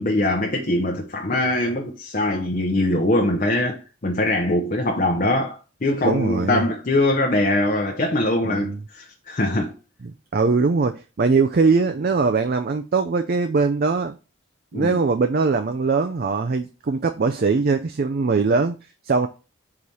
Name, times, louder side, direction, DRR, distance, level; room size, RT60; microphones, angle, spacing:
voice 1, 0.0-9.7 14.7-15.0, left 1 dB, 40° left, 0.7 m, -22 dB
voice 2, 6.0-6.6 8.4-8.8 10.0-14.1 14.7-18.8 19.0-19.3, right 4 dB, 45° right, 0.4 m, -21 dB
4.8 x 4.2 x 5.4 m
head